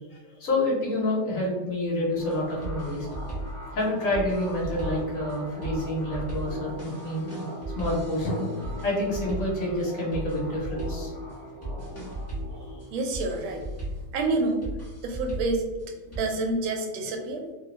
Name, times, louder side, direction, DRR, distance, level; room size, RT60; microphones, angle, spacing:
voice 1, 0.4-3.1 3.7-7.3 7.7-8.4 8.8-11.1, left 1 dB, 50° left, -4 dB, 1.2 m, -28 dB
sound 1, 2.2-16.2, right 1 dB, 20° left, 0.4 m, -37 dB
sound 2, 2.2-15.4, right 1 dB, 65° right, 1.0 m, -42 dB
sound 3, 8.2-9.2, left 1 dB, 70° left, 1.1 m, -38 dB
voice 2, 12.9-13.6 14.1-14.7 15.0-15.6 16.2-17.5, right 2 dB, 90° right, 3 dB, 1.4 m, -27 dB
3.2 x 2.4 x 2.9 m, 1.2 s
omnidirectional pair, 2.2 m